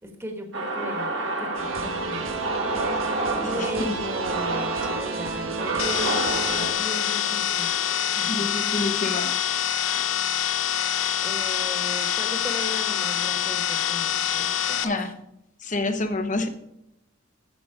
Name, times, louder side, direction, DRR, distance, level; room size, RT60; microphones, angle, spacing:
voice 1, 0.0-1.1 1.4-2.4 2.7-2.8 3.3-7.7 8.2-8.6 11.2-15.0, left 1 dB, 15° right, 2 dB, 1.5 m, -37 dB
sound 1, 0.5-8.7, right 2 dB, 65° right, 1.9 m, -30 dB
sound 2, 1.5-6.7, right 3 dB, 90° right, 1.5 m, -31 dB
voice 2, 3.5-3.9 4.5-4.7 8.3-9.3 14.8-15.1 15.6-16.5, left 2 dB, 40° left, 8 dB, 1.1 m, -28 dB
sound 3, 5.8-14.8, left 10 dB, 80° left, 0.7 m, -25 dB
9.2 x 7.8 x 4.9 m, 0.82 s
head